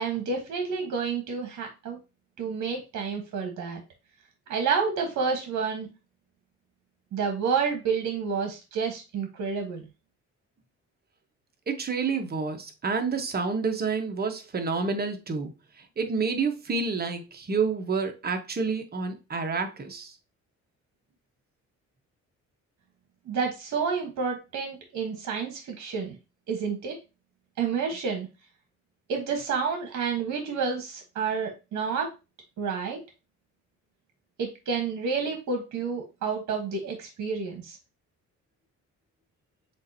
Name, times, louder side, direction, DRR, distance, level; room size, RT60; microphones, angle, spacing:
voice 1, 0.0-2.0 2.4-3.8 4.5-5.9 7.1-9.8 23.2-26.2 26.5-27.0 27.6-28.3 29.1-32.1 32.6-33.0 34.4-37.8, right 5 dB, 65° right, 1.3 m, -29 dB
voice 2, 11.7-15.5 16.0-20.1, right 4 dB, 30° right, 1.0 m, -29 dB
7.2 x 2.6 x 2.7 m
cardioid pair, 90°, 30 cm